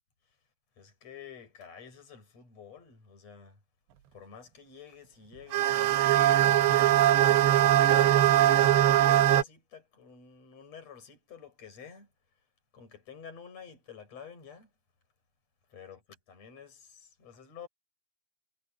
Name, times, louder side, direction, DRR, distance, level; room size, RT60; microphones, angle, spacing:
voice 1, 0.8-3.6 4.1-12.1 12.7-14.7 15.7-16.0 16.3-17.7, left 7 dB, 40° left, 8.4 m, -49 dB
sound 1, 5.5-9.4, right 12 dB, 85° right, 3.5 m, -21 dB
omnidirectional pair, 4.8 m